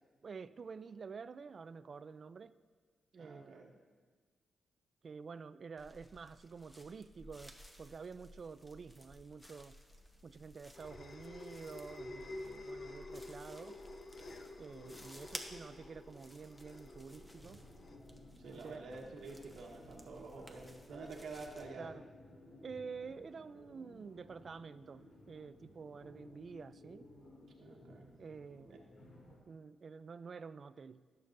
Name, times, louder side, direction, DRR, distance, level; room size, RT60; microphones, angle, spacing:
voice 1, 0.2-2.6 3.1-3.7 5.0-9.8 10.2-13.8 14.6-17.6 18.5-18.8 21.8-22.0 22.6-27.1 28.2-28.8 29.5-31.0, right 5 dB, 50° right, 14 dB, 0.3 m, -49 dB
voice 2, 3.2-3.7 18.4-21.9 27.6-28.1 28.7-28.8, right 3 dB, 75° right, 0 dB, 1.1 m, -48 dB
sound 1, 5.8-21.7, equal, 10° left, 0.9 m, -56 dB
sound 2, 9.9-18.7, left 2 dB, 45° left, 0.8 m, -50 dB
sound 3, 17.0-29.4, left 1 dB, 80° left, 2.3 m, -58 dB
18.5 x 6.8 x 2.6 m, 1.5 s
cardioid pair, 95°, 0 cm